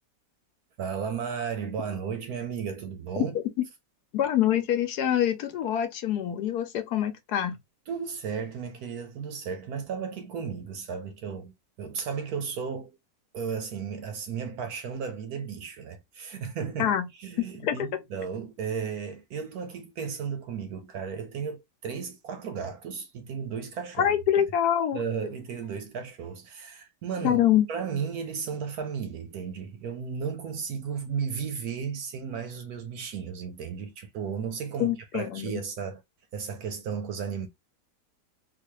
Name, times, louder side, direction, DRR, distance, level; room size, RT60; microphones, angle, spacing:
voice 1, 0.8-3.4 7.9-13.0 13.3-24.1 24.9-36.0 36.3-37.5, right 6 dB, 70° right, 1.0 m, -34 dB
voice 2, 4.1-7.6 16.8-17.1 17.4-17.9 24.0-25.0 27.2-27.7 34.8-35.5, left 10 dB, 70° left, 1.1 m, -25 dB
4.0 x 2.5 x 2.9 m
omnidirectional pair, 1.9 m